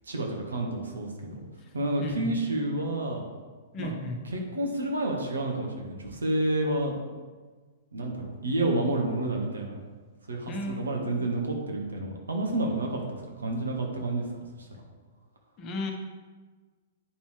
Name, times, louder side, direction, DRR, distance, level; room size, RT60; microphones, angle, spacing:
voice 1, 0.1-1.4 1.7-3.3 3.8-3.9 4.2-6.9 7.9-9.8 10.3-14.2 14.6-14.7, right 2 dB, 75° right, 1 dB, 1.4 m, -29 dB
voice 2, 2.0-2.3 3.7-4.2 10.5-11.4 15.6-15.9, left 2 dB, 30° left, 2 dB, 1.1 m, -35 dB
9.8 x 5.3 x 3.3 m, 1.4 s
figure-of-eight pair, 110°, 0 cm